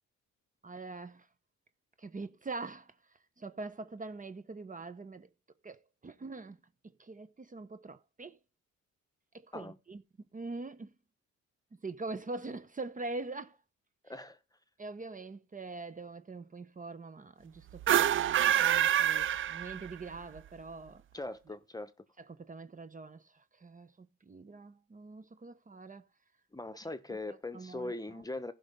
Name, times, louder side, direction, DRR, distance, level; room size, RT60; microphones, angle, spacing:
voice 1, 0.6-1.3 2.0-5.3 5.6-6.6 6.8-8.4 9.3-10.0 10.3-10.9 11.7-13.6 14.8-21.0 22.2-26.1 27.3-27.9, right 3 dB, 25° right, 0.9 m, -44 dB
voice 2, 14.0-14.4 21.1-21.9 26.5-28.5, left 2 dB, 10° left, 1.0 m, -40 dB
sound 1, 17.8-20.1, right 10 dB, 45° right, 0.4 m, -27 dB
15.5 x 5.5 x 3.7 m
cardioid pair, 90°, 30 cm